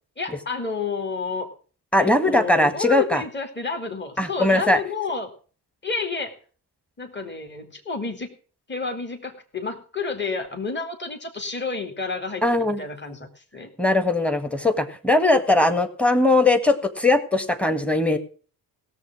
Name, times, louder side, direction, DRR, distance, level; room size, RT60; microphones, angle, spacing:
voice 1, 0.2-1.5 2.0-5.3 5.8-6.3 7.0-8.3 8.7-13.7, left 4 dB, 20° left, 4 dB, 2.6 m, -30 dB
voice 2, 1.9-3.2 4.2-4.8 12.4-12.8 13.8-18.2, left 2 dB, 5° left, 10 dB, 1.7 m, -20 dB
16.5 x 7.2 x 6.1 m, 0.41 s
hypercardioid pair, 55°, 48 cm